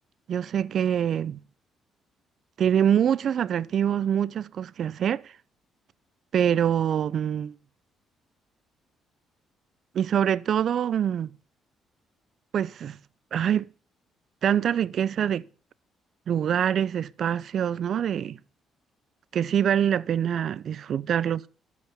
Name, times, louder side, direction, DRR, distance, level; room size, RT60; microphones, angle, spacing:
voice 1, 0.3-1.4 2.6-5.3 6.3-7.5 9.9-11.3 12.5-13.0 13.3-13.7 14.4-15.4 16.3-18.4 19.3-21.4, right 9 dB, 60° right, 0.7 m, -25 dB
12.5 x 8.5 x 7.0 m
supercardioid pair, 60°, 0 cm